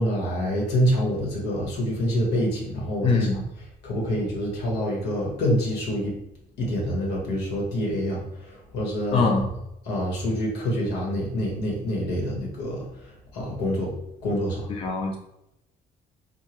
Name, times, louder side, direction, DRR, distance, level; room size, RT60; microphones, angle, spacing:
voice 1, 0.0-3.3 3.8-6.1 6.6-9.4 9.9-12.8 13.3-13.9 14.2-14.7, equal, 80° left, -3 dB, 1.3 m, -26 dB
voice 2, 3.0-3.4 9.1-9.5 14.7-15.2, left 4 dB, 35° left, 1 dB, 0.5 m, -22 dB
3.7 x 2.2 x 2.9 m, 0.85 s
cardioid pair, 110°, 17 cm